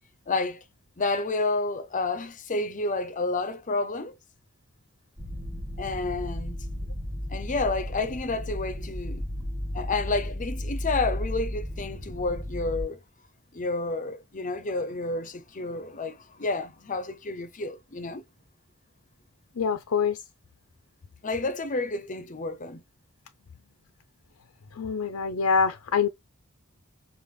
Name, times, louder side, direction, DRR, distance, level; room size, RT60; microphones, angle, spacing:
voice 1, 0.3-0.6 1.0-4.1 5.8-6.6 7.3-9.2 9.7-13.0 13.5-18.2 21.2-22.8, left 3 dB, 35° left, 0.7 m, -30 dB
sound 1, 5.2-12.8, equal, 15° right, 2.4 m, -34 dB
voice 2, 19.6-20.2 24.8-26.1, left 5 dB, 85° left, 0.6 m, -25 dB
5.5 x 2.5 x 3.2 m
head